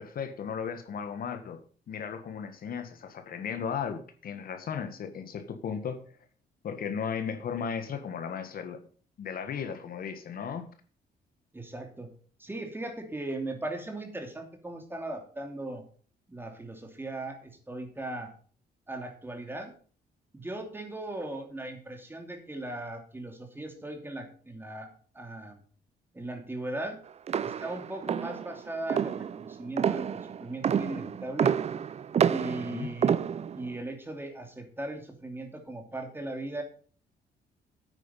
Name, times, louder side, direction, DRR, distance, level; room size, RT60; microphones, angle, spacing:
voice 1, 0.0-1.6 1.9-6.2 6.6-8.8 9.2-10.7 32.7-32.9, left 7 dB, 60° left, 8 dB, 1.5 m, -35 dB
voice 2, 11.5-12.1 12.4-15.8 16.3-18.3 18.9-19.7 20.3-25.6 26.1-27.0 27.4-31.6 32.3-33.1 33.5-36.6, right 2 dB, 15° right, 4 dB, 2.8 m, -38 dB
sound 1, 27.3-33.7, right 8 dB, 40° right, 0.5 m, -29 dB
9.1 x 9.1 x 5.7 m, 0.43 s
cardioid pair, 115°, 17 cm